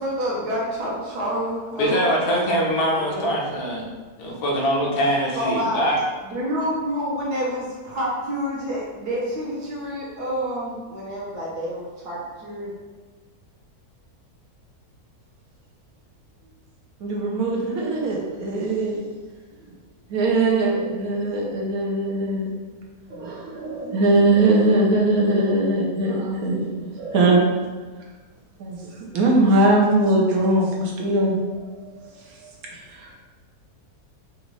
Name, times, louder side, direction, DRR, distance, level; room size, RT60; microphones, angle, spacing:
voice 1, 0.0-2.0 2.9-3.3 5.3-5.8 6.2-12.7, equal, 90° right, -5 dB, 1.6 m, -28 dB
voice 2, 1.8-3.8 4.2-6.0, equal, 70° left, -3 dB, 1.3 m, -23 dB
voice 3, 17.0-19.0 20.1-22.5 23.1-27.5 28.6-31.4 32.0-33.1, right 2 dB, 70° right, -2 dB, 1.3 m, -21 dB
5.1 x 2.5 x 3.1 m, 1.3 s
omnidirectional pair, 1.6 m